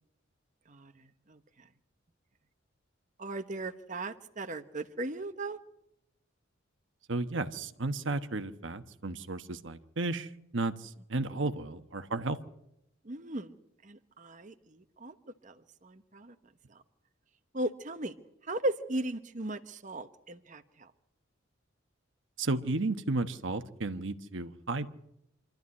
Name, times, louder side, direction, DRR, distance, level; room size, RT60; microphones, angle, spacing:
voice 1, 0.7-1.7 3.2-5.6 11.2-11.3 13.0-13.5 13.8-15.1 15.4-16.4 16.7-16.8 17.5-18.1 18.4-20.9, right 1 dB, 40° right, 8 dB, 1.1 m, -37 dB
voice 2, 7.1-12.4 22.4-24.9, right 2 dB, 70° right, 10 dB, 1.2 m, -33 dB
26.5 x 13.0 x 9.7 m, 0.81 s
head